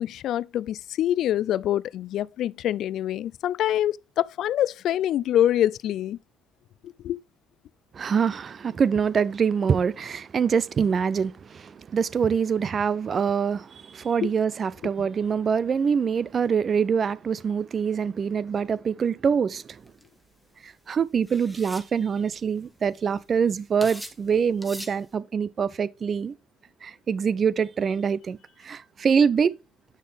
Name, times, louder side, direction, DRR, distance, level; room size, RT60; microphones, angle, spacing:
voice 1, 0.0-6.2 6.8-7.2 14.2-14.3, left 12 dB, 65° left, 0.3 m, -25 dB
voice 2, 7.9-19.8 20.6-26.3 26.8-28.4 28.6-29.6, right 6 dB, 45° right, 0.6 m, -25 dB
sound 1, 19.9-20.1 21.3-21.9 22.6-22.7 22.8-23.2 23.8-24.2 24.6-25.0, equal, 5° right, 1.9 m, -40 dB
8.9 x 6.4 x 3.5 m
supercardioid pair, 65°, 0 cm